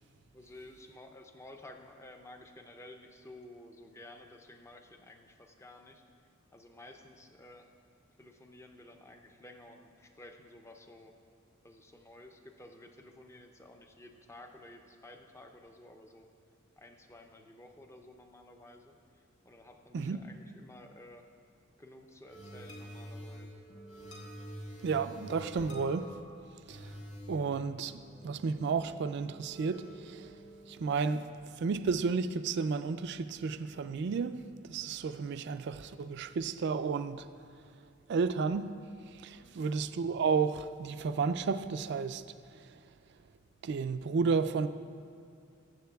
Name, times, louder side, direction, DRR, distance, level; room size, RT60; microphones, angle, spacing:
voice 1, 0.3-6.0 6.5-7.7 8.2-11.1 11.6-16.3 16.8-21.3 21.8-23.6 39.3-39.7, left 1 dB, 15° left, 0.5 m, -53 dB
sound 1, 22.3-30.9, equal, 70° left, 1.7 m, -48 dB
voice 2, 24.8-26.1 26.7-27.0 27.3-30.4 30.7-37.3 38.1-42.2 42.5-42.8 43.6-44.7, right 5 dB, 55° right, 0.3 m, -32 dB
20.0 x 7.2 x 2.3 m
head